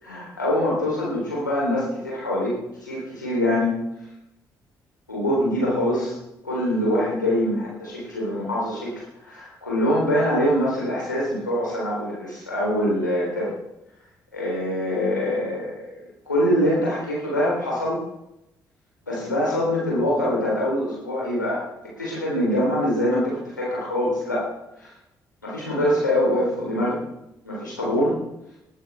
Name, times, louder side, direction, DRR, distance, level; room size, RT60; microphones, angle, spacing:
voice 1, 0.0-3.8 5.1-6.1 6.4-13.5 14.3-15.9 16.3-18.0 19.0-24.5 24.8-24.9 25.4-27.0 27.4-28.2, equal, 90° left, -5 dB, 3.6 m, -24 dB
20.0 x 11.5 x 3.5 m, 0.89 s
figure-of-eight pair, 40°, 10 cm